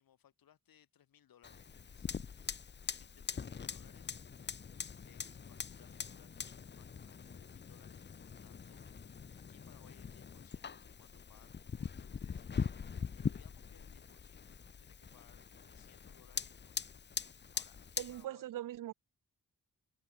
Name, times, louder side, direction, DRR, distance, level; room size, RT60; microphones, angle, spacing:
voice 1, 0.0-4.2 4.7-6.5 6.8-18.5, left 10 dB, 90° left, 2.5 m, -66 dB
Fire, 1.4-18.2, left 6 dB, 30° left, 0.8 m, -43 dB
voice 2, 18.0-18.9, right 13 dB, 70° right, 0.5 m, -41 dB
wide cardioid pair, 130°, 34 cm